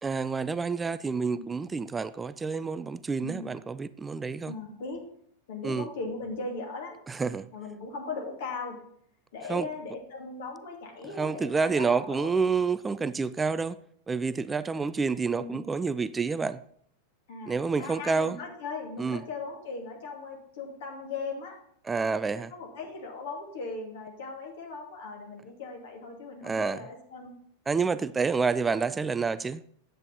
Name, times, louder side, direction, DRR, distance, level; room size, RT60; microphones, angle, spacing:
voice 1, 0.0-4.5 5.6-5.9 7.1-7.5 9.5-9.7 11.2-13.8 14.1-16.6 17.5-18.4 19.0-19.2 21.9-22.5 26.4-26.8 27.7-29.6, right 4 dB, 15° right, 0.3 m, -28 dB
voice 2, 4.4-5.0 5.5-7.0 7.5-8.8 9.3-12.3 15.4-15.6 17.3-21.6 22.3-27.4, left 3 dB, 55° left, 2.3 m, -38 dB
9.6 x 7.9 x 4.0 m
figure-of-eight pair, 90°, 0 cm